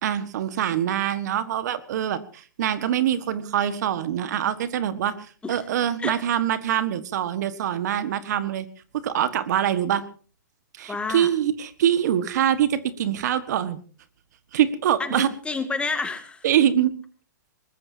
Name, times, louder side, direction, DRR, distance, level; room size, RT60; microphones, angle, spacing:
voice 1, 0.0-5.1 5.5-8.7 8.9-10.0 10.8-13.8 14.5-15.3 16.4-16.9, right 10 dB, 60° right, 13 dB, 1.6 m, -24 dB
voice 2, 10.9-11.3 15.0-16.4, left 4 dB, 10° left, 8 dB, 2.4 m, -29 dB
22.5 x 20.0 x 2.8 m, 0.39 s
hypercardioid pair, 125°, 10 cm